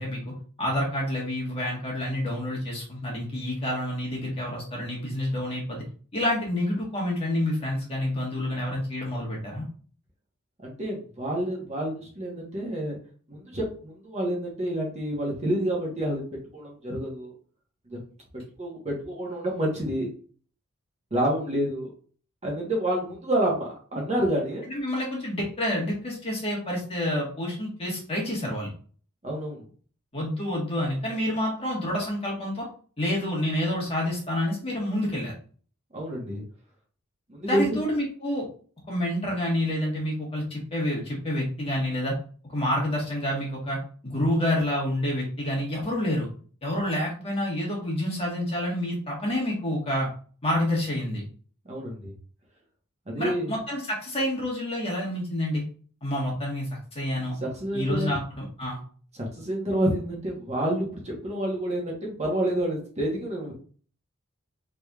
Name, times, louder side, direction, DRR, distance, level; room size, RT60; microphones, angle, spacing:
voice 1, 0.0-5.8 6.1-9.6 24.7-28.7 30.1-32.7 33.0-35.3 37.4-38.5 38.9-42.1 42.5-43.8 44.0-46.3 46.6-50.1 50.4-51.2 53.2-55.6 56.0-56.7 56.9-57.3 57.7-58.8, left 1 dB, 25° left, -3 dB, 1.4 m, -28 dB
voice 2, 10.6-13.0 13.3-16.2 16.5-17.3 17.9-18.0 18.6-20.1 21.1-21.9 22.4-24.6 29.2-29.6 35.9-36.4 37.3-37.8 51.6-52.1 53.1-53.5 57.4-58.2 59.1-63.5, right 1 dB, 30° right, -2 dB, 1.1 m, -28 dB
4.0 x 3.3 x 2.4 m, 0.43 s
head